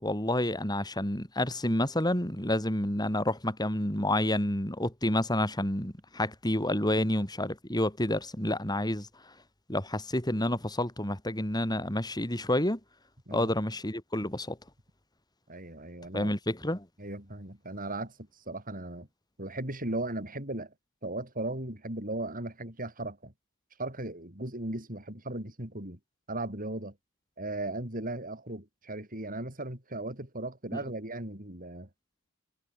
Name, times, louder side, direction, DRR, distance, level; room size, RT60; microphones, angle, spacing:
voice 1, 0.0-9.3 9.7-12.8 13.3-14.6 16.1-16.9, left 1 dB, 20° left, 5.0 m, -29 dB
voice 2, 15.5-16.3 17.0-18.1 18.5-19.1 19.4-20.7 21.0-23.3 23.8-26.0 26.3-26.9 27.4-31.9, right 2 dB, 40° right, 6.6 m, -37 dB
head